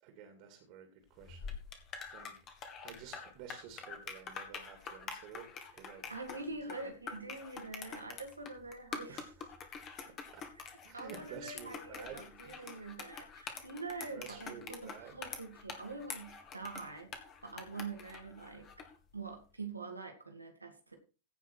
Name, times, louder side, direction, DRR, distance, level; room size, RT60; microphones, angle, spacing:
voice 1, 0.0-1.6 1.9-2.4 2.8-6.9 9.1-9.5 9.9-10.5 10.8-12.9 14.1-15.2, right 7 dB, 45° right, 6 dB, 2.4 m, -52 dB
sound 1, 1.2-18.9, left 6 dB, 30° left, 2.2 m, -46 dB
voice 2, 6.1-9.3 10.9-17.1 17.4-18.7 19.1-21.0, right 3 dB, 80° right, 4 dB, 2.4 m, -45 dB
16.0 x 5.8 x 4.6 m, 0.34 s
figure-of-eight pair, 90°, 0 cm